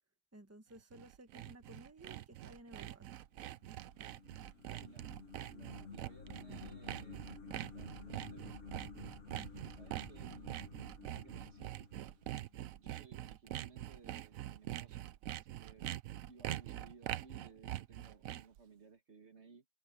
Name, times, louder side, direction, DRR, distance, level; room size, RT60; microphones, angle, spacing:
voice 1, 0.3-3.1, right 1 dB, 10° right, 1.5 m, -56 dB
Sawing, 0.8-18.6, right 13 dB, 90° right, 1.1 m, -44 dB
sound 1, 3.5-12.7, left 5 dB, 60° left, 1.8 m, -53 dB
voice 2, 4.7-5.1 5.4-8.8 9.7-12.2 12.7-16.0 16.3-19.7, right 4 dB, 55° right, 1.8 m, -60 dB
omnidirectional pair, 1.4 m